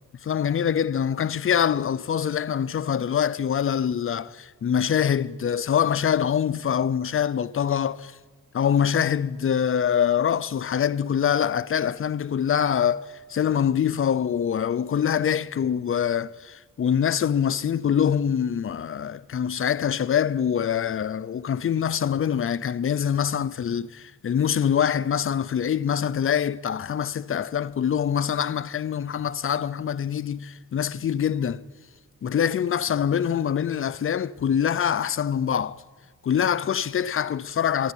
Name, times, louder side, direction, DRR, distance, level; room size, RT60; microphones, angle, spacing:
voice 1, 0.2-8.1 8.5-13.0 13.3-31.6 32.2-35.8 36.2-37.9, left 8 dB, 40° left, 0.5 m, -24 dB
23.0 x 11.5 x 9.9 m
wide cardioid pair, 165°, 33 cm